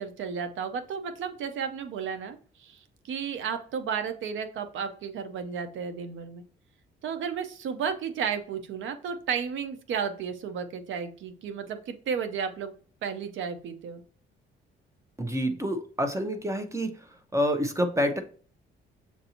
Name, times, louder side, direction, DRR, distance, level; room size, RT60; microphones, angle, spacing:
voice 1, 0.0-6.4 7.0-12.7 13.0-14.0, right 6 dB, 75° right, 8 dB, 0.7 m, -33 dB
voice 2, 15.2-16.9 17.3-18.2, equal, 15° right, 7 dB, 0.7 m, -27 dB
6.7 x 2.6 x 2.9 m, 0.43 s
cardioid pair, 90°, 20 cm